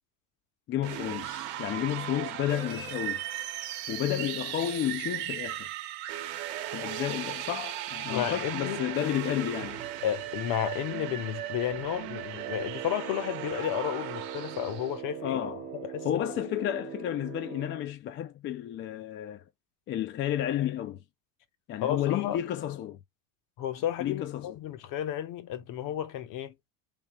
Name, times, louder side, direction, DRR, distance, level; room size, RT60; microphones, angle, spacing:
voice 1, 0.7-3.2 3.9-5.7 6.7-9.8 15.2-15.7 16.0-19.4 19.9-21.0 21.7-23.0 24.0-24.5, left 11 dB, 30° left, 0.4 m, -31 dB
sound 1, 0.8-15.0, right 12 dB, 70° right, 1.0 m, -37 dB
voice 2, 8.1-8.8 10.0-15.4 15.7-16.2 21.8-22.4 23.6-26.5, left 11 dB, 50° left, 0.8 m, -32 dB
Brass instrument, 12.3-17.9, right 8 dB, 45° right, 1.0 m, -41 dB
3.5 x 2.7 x 2.9 m
supercardioid pair, 115°, 42 cm